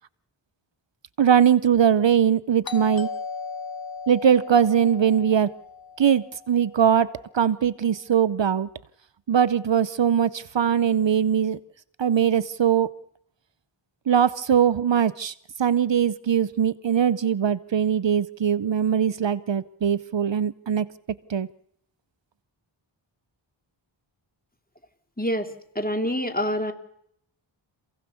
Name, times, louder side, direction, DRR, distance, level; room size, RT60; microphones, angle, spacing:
voice 1, 1.2-3.1 4.1-5.5 6.0-8.7 9.3-11.6 12.0-13.0 14.1-15.3 15.6-20.9 21.3-21.5, right 8 dB, 65° right, 0.8 m, -21 dB
Doorbell, 2.6-7.2, left 5 dB, 45° left, 2.1 m, -37 dB
voice 2, 25.2-25.5 25.7-26.7, equal, 20° left, 2.8 m, -26 dB
27.0 x 16.5 x 7.0 m
wide cardioid pair, 65°, 49 cm